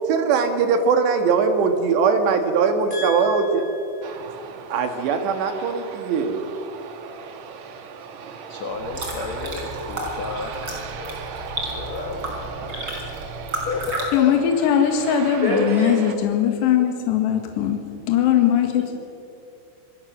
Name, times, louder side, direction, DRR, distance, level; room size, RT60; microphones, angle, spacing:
voice 1, 0.1-3.6 4.7-6.4, right 5 dB, 70° right, 6 dB, 3.7 m, -21 dB
voice 2, 2.9-4.3 15.4-16.0, left 1 dB, 10° left, -1 dB, 5.3 m, -28 dB
Aircraft, 4.0-16.2, right 6 dB, 85° right, 1.6 m, -37 dB
voice 3, 8.5-12.5 13.7-14.7, left 3 dB, 90° left, 4 dB, 1.5 m, -33 dB
sound 1, 8.7-14.1, right 1 dB, 25° right, 4.8 m, -32 dB
voice 4, 14.1-17.8 18.1-19.0, left 9 dB, 70° left, 4 dB, 3.7 m, -20 dB
26.5 x 21.0 x 6.5 m, 2.6 s
omnidirectional pair, 5.5 m